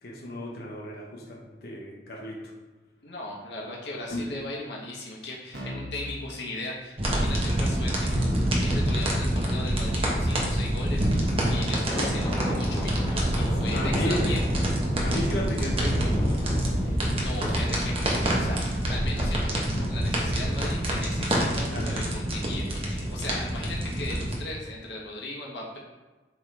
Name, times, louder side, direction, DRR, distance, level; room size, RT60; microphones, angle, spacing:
voice 1, 0.0-2.4 4.1-4.2 13.7-14.2 15.0-16.5 21.7-21.9, equal, 60° left, -2 dB, 1.0 m, -33 dB
voice 2, 3.0-8.1 8.6-11.1 11.5-14.5 16.8-25.8, left 2 dB, 75° left, -3 dB, 1.5 m, -38 dB
Keyboard (musical), 5.5-6.1 8.1-17.0, left 1 dB, 70° right, 1.3 m, -43 dB
sound 1, 7.0-24.4, right 1 dB, 35° right, 1.1 m, -26 dB
Thunder, 10.8-20.7, equal, 10° left, 1.1 m, -35 dB
7.8 x 3.7 x 3.5 m, 1.2 s
head